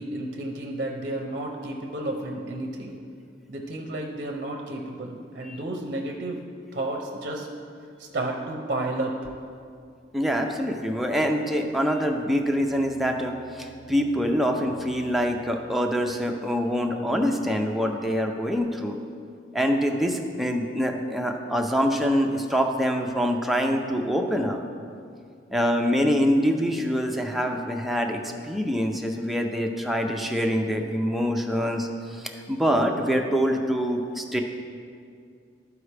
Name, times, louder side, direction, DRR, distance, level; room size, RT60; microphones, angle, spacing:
voice 1, 0.0-3.0 3.5-6.4 6.7-7.5 8.0-9.3, right 1 dB, 50° right, 1 dB, 0.6 m, -32 dB
voice 2, 10.1-19.0 19.5-24.6 25.5-34.4, equal, ahead, 2 dB, 0.5 m, -25 dB
12.5 x 4.8 x 3.3 m, 2.3 s
head